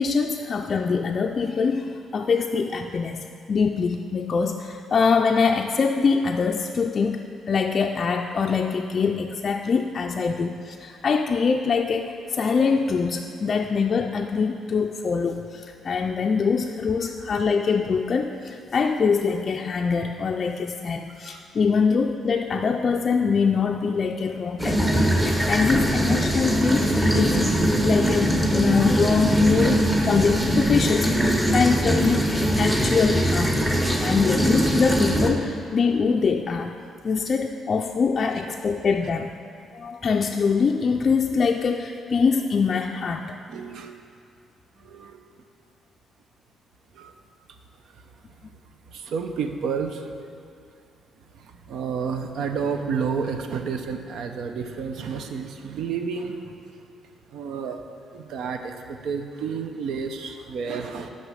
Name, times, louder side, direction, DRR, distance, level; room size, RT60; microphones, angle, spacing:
voice 1, 0.0-26.9 27.1-33.6 34.0-36.7 37.0-39.3 39.7-43.4, left 5 dB, 45° left, 2 dB, 0.3 m, -24 dB
sound 1, 24.6-35.3, equal, 10° right, 0.9 m, -21 dB
voice 2, 43.5-44.0 44.8-45.4 46.9-47.2 47.8-48.4 48.9-50.3 51.3-56.8 57.3-57.9 58.1-61.1, right 6 dB, 75° right, 6 dB, 0.6 m, -31 dB
6.5 x 5.5 x 6.3 m, 2.4 s
cardioid pair, 90°, 0 cm